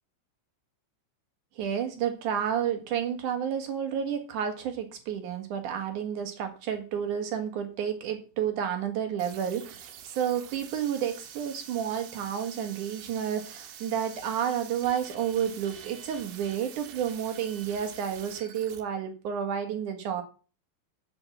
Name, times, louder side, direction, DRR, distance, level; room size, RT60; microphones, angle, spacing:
voice 1, 1.6-20.2, right 8 dB, 60° right, 6 dB, 2.4 m, -31 dB
sound 1, 9.2-18.8, right 9 dB, 80° right, 3.4 m, -46 dB
8.0 x 7.0 x 7.1 m, 0.36 s
omnidirectional pair, 5.0 m